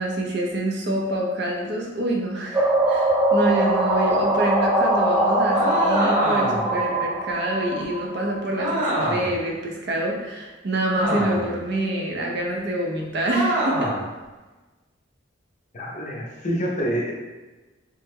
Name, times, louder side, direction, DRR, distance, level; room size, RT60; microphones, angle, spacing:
voice 1, 0.0-13.9, right 1 dB, 60° right, 0 dB, 0.6 m, -26 dB
sound 1, 2.5-8.3, right 1 dB, 10° right, 0.3 m, -22 dB
sound 2, 5.5-6.7 8.6-9.4 10.9-11.6 13.3-14.1, right 1 dB, 45° right, 0.9 m, -25 dB
voice 2, 15.7-17.1, equal, 40° left, -2 dB, 0.6 m, -27 dB
3.3 x 2.1 x 3.4 m, 1.2 s
head